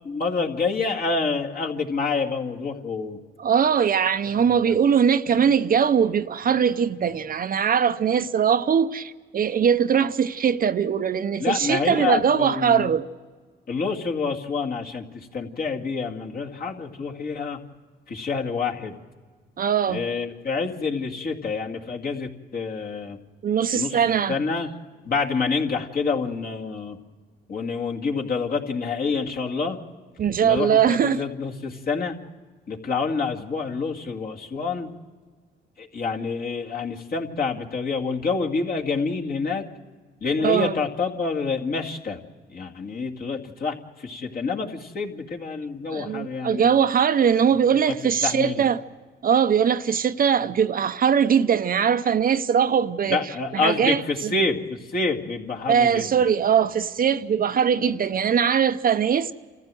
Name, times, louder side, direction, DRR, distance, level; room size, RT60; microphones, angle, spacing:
voice 1, 0.0-3.2 4.3-4.8 5.3-5.4 11.4-12.9 13.7-15.0 15.3-17.6 18.1-18.9 19.9-23.2 23.7-24.0 24.3-24.7 25.1-27.0 27.5-29.8 30.4-32.2 32.7-34.9 35.8-39.7 40.2-42.2 42.5-46.8 47.7-47.8 48.2-48.6 53.1-56.1, left 4 dB, 50° left, 2.2 m, -27 dB
voice 2, 3.4-13.0 19.6-20.0 23.4-24.4 30.2-31.2 40.4-40.7 45.9-48.8 49.2-54.3 55.7-59.3, right 7 dB, 45° right, 0.7 m, -21 dB
27.5 x 15.0 x 7.7 m
cardioid pair, 90°, 20 cm